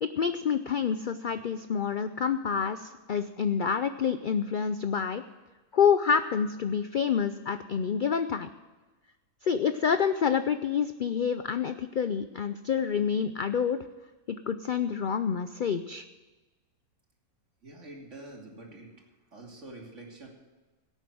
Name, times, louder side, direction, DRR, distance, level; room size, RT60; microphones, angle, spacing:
voice 1, 0.0-5.2 5.7-8.5 9.4-13.8 14.3-16.0, left 7 dB, 65° left, 10 dB, 0.5 m, -28 dB
voice 2, 17.6-19.0 19.3-20.3, right 2 dB, 55° right, -1 dB, 3.0 m, -46 dB
17.0 x 8.8 x 6.2 m, 1.2 s
omnidirectional pair, 1.5 m